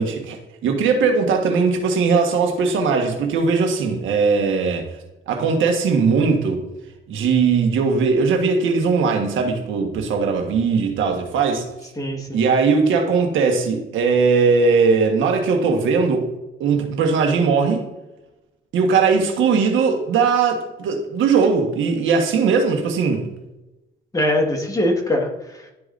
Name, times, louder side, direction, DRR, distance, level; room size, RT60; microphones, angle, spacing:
voice 1, 0.0-4.8 5.3-6.6 7.1-11.6 12.3-16.3 16.6-17.8 18.7-23.3, right 5 dB, 75° right, 1.4 m, -19 dB
voice 2, 12.0-12.4 24.1-25.7, left 1 dB, 15° left, 1.6 m, -22 dB
12.0 x 4.9 x 2.5 m
cardioid pair, 90°, 20 cm